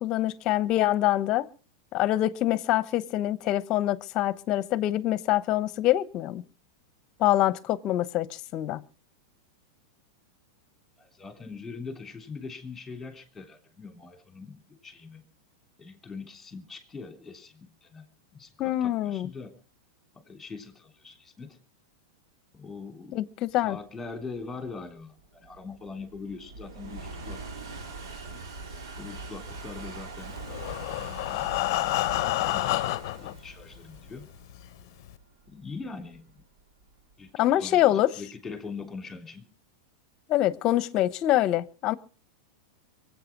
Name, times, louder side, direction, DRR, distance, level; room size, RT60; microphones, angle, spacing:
voice 1, 0.0-1.5 1.9-6.4 7.2-8.8 18.6-19.3 23.1-23.8 37.4-38.1 40.3-41.9, left 14 dB, 35° left, 1.0 m, -25 dB
voice 2, 11.0-15.3 15.8-18.1 18.3-19.6 20.1-21.6 22.5-23.2 23.6-27.4 27.8-28.4 29.0-30.4 31.3-34.3 35.5-36.4 37.2-39.5, left 4 dB, 10° left, 3.2 m, -42 dB
sound 1, 24.2-37.1, right 3 dB, 85° right, 4.2 m, -42 dB
Breathing, 30.4-33.3 34.1-34.2 34.5-34.6 35.1-35.2, left 18 dB, 55° left, 0.7 m, -28 dB
23.5 x 8.6 x 6.1 m
supercardioid pair, 150°, 2 cm